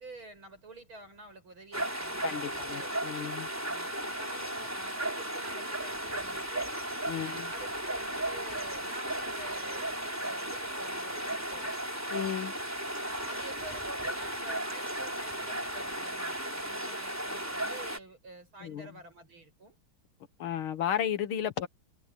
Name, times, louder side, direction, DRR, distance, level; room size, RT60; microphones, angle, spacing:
voice 1, 0.0-2.9 3.6-6.7 7.2-9.9 10.2-11.8 13.0-19.8, right 2 dB, 80° right, 9.1 m, -48 dB
sound 1, 1.7-18.0, right 1 dB, 5° right, 3.7 m, -35 dB
voice 2, 2.2-3.5 7.1-7.5 12.1-12.5 18.6-18.9 20.4-21.7, left 9 dB, 90° left, 2.1 m, -33 dB
omnidirectional pair, 2.2 m